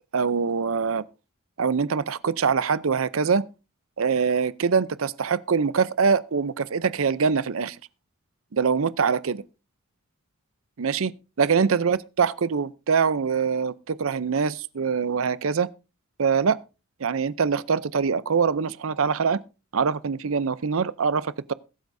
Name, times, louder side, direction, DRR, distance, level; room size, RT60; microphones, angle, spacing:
voice 1, 0.1-1.0 1.6-3.4 4.0-7.8 8.5-9.4 10.8-11.1 11.4-15.7 16.2-16.6 17.0-19.4 19.7-21.5, right 5 dB, 70° right, 0.6 m, -24 dB
21.5 x 8.2 x 2.7 m
head